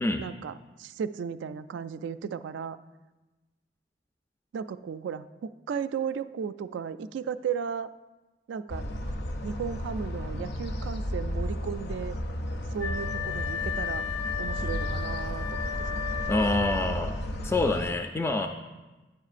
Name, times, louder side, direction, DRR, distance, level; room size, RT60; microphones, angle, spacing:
voice 1, 0.2-2.8 4.5-7.9 8.5-8.9 9.4-12.2 12.7-14.1 14.4-15.7, right 7 dB, 85° right, 13 dB, 0.3 m, -35 dB
sound 1, 8.7-17.9, equal, 65° left, 0.5 m, -33 dB
Wind instrument woodwind instrument, 12.8-17.2, left 6 dB, 85° left, 1.0 m, -34 dB
voice 2, 16.3-17.2 17.4-18.5, left 2 dB, 15° left, 5 dB, 0.3 m, -26 dB
9.5 x 7.2 x 2.5 m, 1.1 s
head